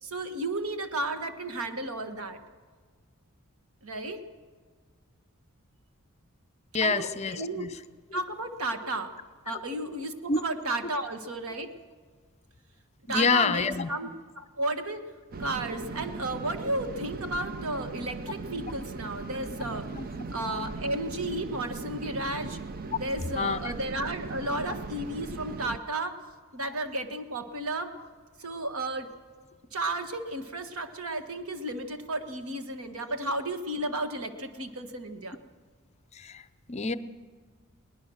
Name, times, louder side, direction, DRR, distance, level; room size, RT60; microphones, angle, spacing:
voice 1, 0.0-2.4 3.8-4.2 6.8-7.1 7.3-7.7 8.1-9.1 9.5-11.7 13.1-14.1 14.4-15.1 15.4-19.9 20.3-22.6 23.0-26.2 26.5-27.9 28.4-29.1 29.7-35.4, right 2 dB, 80° right, 8 dB, 1.5 m, -33 dB
voice 2, 6.7-7.8 8.1-8.2 9.5-9.6 10.3-10.4 13.1-13.9 19.9-20.1 23.3-23.7 33.2-33.3 36.1-36.9, left 4 dB, 30° left, 13 dB, 0.6 m, -28 dB
sound 1, 15.3-25.8, right 4 dB, 45° right, 0.6 m, -38 dB
21.5 x 19.0 x 6.4 m, 1.5 s
head